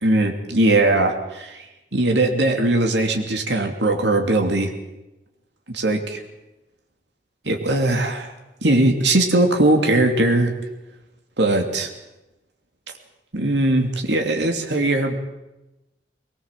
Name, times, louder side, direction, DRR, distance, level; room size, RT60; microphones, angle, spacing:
voice 1, 0.0-4.7 5.7-6.2 7.4-8.3 8.6-10.5 11.4-11.9 13.3-15.1, right 2 dB, 90° right, 3 dB, 2.9 m, -20 dB
22.0 x 20.5 x 7.6 m, 0.99 s
head